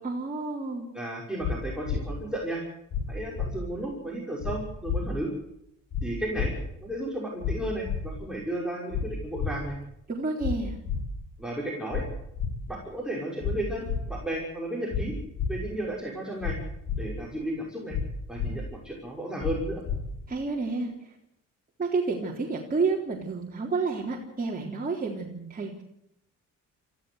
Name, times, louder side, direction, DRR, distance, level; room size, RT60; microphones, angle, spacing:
voice 1, 0.0-0.9 10.1-10.8 20.3-21.1 21.8-25.7, right 4 dB, 30° right, -3 dB, 3.9 m, -30 dB
voice 2, 0.9-2.6 3.1-5.3 6.0-6.5 6.8-9.7 11.4-12.0 12.7-15.2 15.5-16.6 17.0-18.0 18.3-19.8, right 1 dB, ahead, -3 dB, 6.2 m, -33 dB
sound 1, 1.4-1.5 1.9-2.0 2.9-3.0 3.4-3.5 4.4-4.5 4.9-5.0 5.9-6.0 6.4-6.5 7.4-7.5 7.9-8.0 8.9-9.0 9.4-9.5 10.4-10.5 10.9-11.0 11.9-12.0 12.4-12.5 13.4-13.5 13.9-14.0 14.9-15.0 15.4-15.5 16.4-16.5 16.9-17.0 17.9-18.0 18.4-18.5 19.4-19.5 19.9-20.0, left 7 dB, 65° left, 6.4 m, -29 dB
25.0 x 15.0 x 8.1 m, 0.79 s
cardioid pair, 90°, 30 cm